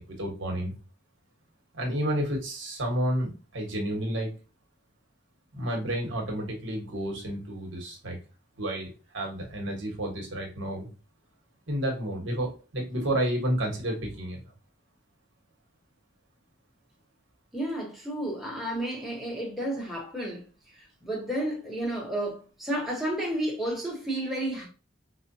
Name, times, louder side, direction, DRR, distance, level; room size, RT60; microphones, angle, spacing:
voice 1, 0.1-0.7 1.7-4.3 5.5-8.2 8.6-10.9 11.7-14.4, right 1 dB, 75° right, 1.2 m, -30 dB
voice 2, 17.5-20.4 21.0-24.7, right 1 dB, ahead, 1.0 m, -31 dB
4.9 x 2.2 x 2.6 m
head